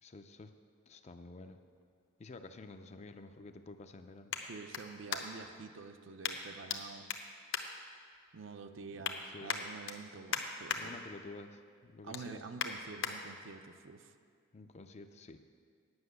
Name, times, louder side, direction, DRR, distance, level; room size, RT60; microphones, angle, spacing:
voice 1, 0.0-0.5 0.9-1.6 2.2-4.3 9.3-9.6 10.7-12.5 14.5-15.4, left 3 dB, 30° left, 8 dB, 0.4 m, -50 dB
sound 1, 1.6-5.6 6.2-6.8 7.1-8.4 8.7-9.2 9.5-10.8 11.2-11.5 11.8-13.1 13.7-13.8, left 7 dB, 60° left, 0.8 m, -40 dB
voice 2, 4.4-7.1 8.3-11.0 12.0-14.1, right 4 dB, 65° right, 8 dB, 0.5 m, -48 dB
9.6 x 6.1 x 8.1 m, 2.1 s
head